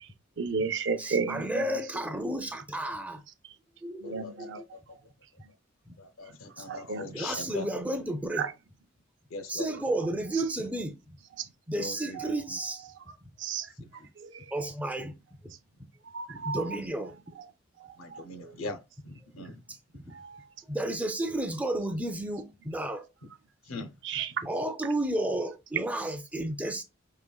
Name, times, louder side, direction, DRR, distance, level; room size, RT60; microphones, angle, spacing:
voice 1, 0.4-2.1 4.0-4.6 6.7-7.7 8.3-8.5 9.7-10.4 12.0-12.9 13.4-13.7 14.2-14.6 16.1-17.2 18.1-18.5 20.1-20.4 21.3-21.4 24.0-24.3, right 5 dB, 60° right, 0.5 m, -35 dB
voice 2, 1.0-3.2 3.8-4.6 6.6-6.7 7.1-8.5 9.5-11.2 11.7-12.8 14.5-15.1 15.4-15.5 16.3-17.2 20.1-20.2 20.7-23.0 24.4-26.8, right 1 dB, 5° right, 0.4 m, -32 dB
voice 3, 4.0-4.6 4.9-5.0 6.0-8.1 9.3-9.7 11.8-12.6 14.0-14.1 16.3-16.4 16.7-16.9 18.0-19.6 23.7-24.2, left 2 dB, 80° left, 0.6 m, -41 dB
4.9 x 2.9 x 2.3 m
head